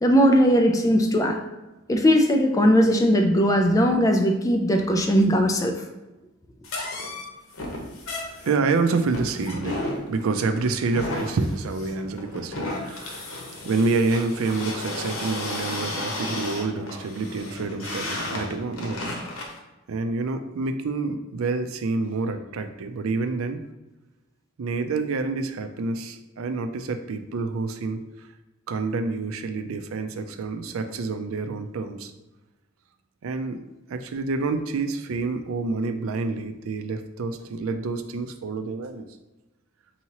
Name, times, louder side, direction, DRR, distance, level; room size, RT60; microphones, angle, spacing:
voice 1, 0.0-1.4 1.9-5.7, equal, 15° left, 3 dB, 0.4 m, -19 dB
sound 1, 6.6-19.6, left 2 dB, 90° left, 0.8 m, -33 dB
voice 2, 8.2-19.0 19.9-23.6 24.6-28.3 28.7-32.1 33.2-33.6 33.9-39.1, right 3 dB, 85° right, 7 dB, 0.4 m, -28 dB
4.6 x 2.9 x 2.9 m, 1.0 s
head